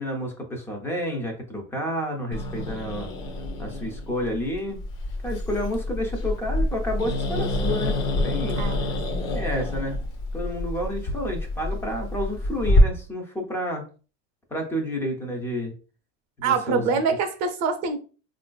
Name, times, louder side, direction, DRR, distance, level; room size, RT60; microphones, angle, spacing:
voice 1, 0.0-3.1 3.6-4.8 5.2-8.6 9.3-10.0 10.3-13.9 14.5-15.7 16.4-16.9, equal, 5° left, 0.3 m, -30 dB
Growling, 2.3-12.8, left 1 dB, 40° left, 0.7 m, -27 dB
voice 2, 8.5-9.2 16.4-18.0, right 5 dB, 40° right, 0.6 m, -25 dB
3.6 x 2.5 x 2.2 m
supercardioid pair, 145°, 40 cm